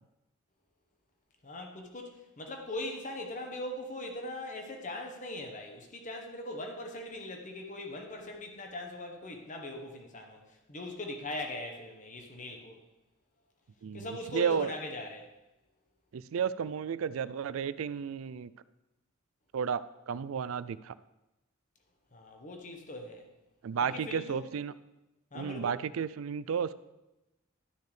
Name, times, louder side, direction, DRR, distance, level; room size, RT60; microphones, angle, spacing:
voice 1, 1.4-12.8 13.9-15.3 22.1-23.3 23.8-24.5 25.3-25.7, left 1 dB, 40° left, 3 dB, 1.2 m, -40 dB
voice 2, 14.3-14.7 16.1-18.5 19.5-20.9 23.6-24.7 25.3-26.7, right 7 dB, 80° right, 16 dB, 0.4 m, -32 dB
12.5 x 6.6 x 3.3 m, 0.99 s
head